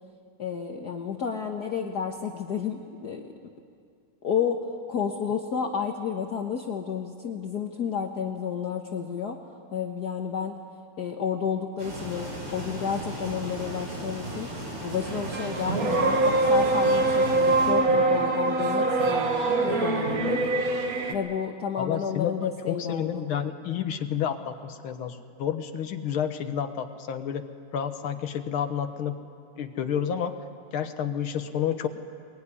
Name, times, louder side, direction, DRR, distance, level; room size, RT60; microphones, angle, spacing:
voice 1, 0.4-3.3 4.2-4.6 4.9-9.4 9.7-10.6 11.0-14.5 14.8-20.4 21.1-23.2, left 7 dB, 50° left, 2 dB, 1.6 m, -31 dB
sound 1, 11.8-17.7, right 1 dB, 85° right, 6.3 m, -36 dB
sound 2, 15.1-21.1, right 2 dB, 45° right, 1.8 m, -24 dB
voice 2, 21.8-27.4 27.7-29.2 29.6-30.3 30.7-31.9, left 8 dB, 70° left, 7 dB, 2.1 m, -30 dB
22.0 x 21.5 x 9.9 m, 2.3 s
omnidirectional pair, 2.4 m